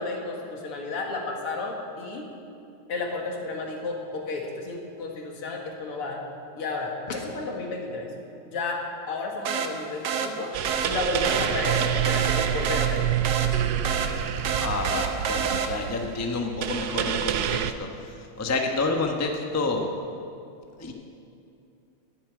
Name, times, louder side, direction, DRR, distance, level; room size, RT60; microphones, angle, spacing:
voice 1, 0.0-2.3 2.9-6.2 6.6-8.1 8.5-10.5 10.9-13.1, left 3 dB, 90° left, 0 dB, 2.8 m, -32 dB
sound 1, 9.5-16.1, right 6 dB, 60° right, 1.3 m, -29 dB
sound 2, 10.5-17.7, right 10 dB, 85° right, 0.8 m, -27 dB
voice 2, 14.6-19.9 20.8-20.9, left 3 dB, 15° left, 3 dB, 0.5 m, -29 dB
11.5 x 10.0 x 9.4 m, 2.6 s
omnidirectional pair, 2.4 m